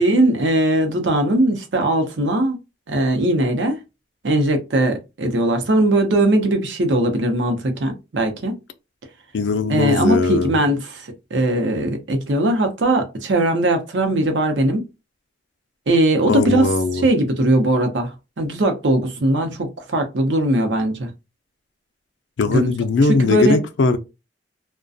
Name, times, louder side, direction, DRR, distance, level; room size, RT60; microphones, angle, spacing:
voice 1, 0.0-2.6 2.9-3.8 4.2-8.5 9.7-14.8 15.9-21.1 22.5-22.7 23.0-23.6, right 1 dB, 80° right, 0.7 m, -19 dB
voice 2, 9.3-10.6 16.3-17.1 22.4-24.0, left 3 dB, 85° left, 0.4 m, -19 dB
2.4 x 2.2 x 2.5 m
head